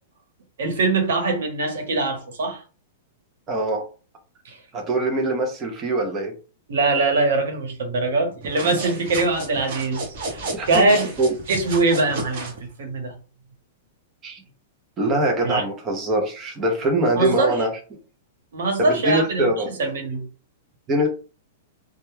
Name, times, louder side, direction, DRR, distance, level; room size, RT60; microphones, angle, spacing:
voice 1, 0.6-2.6 4.4-4.6 6.7-11.1 11.5-12.5 12.8-13.1 15.4-15.6 17.1-17.6 18.5-20.3, right 3 dB, 80° right, 0.9 m, -22 dB
voice 2, 3.5-3.8 4.7-6.3 10.5-10.9 11.2-11.3 14.2-14.4 15.0-17.7 18.8-19.7 20.9-21.1, right 1 dB, 20° right, 0.4 m, -23 dB
sound 1, 8.4-12.6, right 2 dB, 50° right, 0.8 m, -33 dB
2.1 x 2.1 x 3.1 m
supercardioid pair, 170°, 0 cm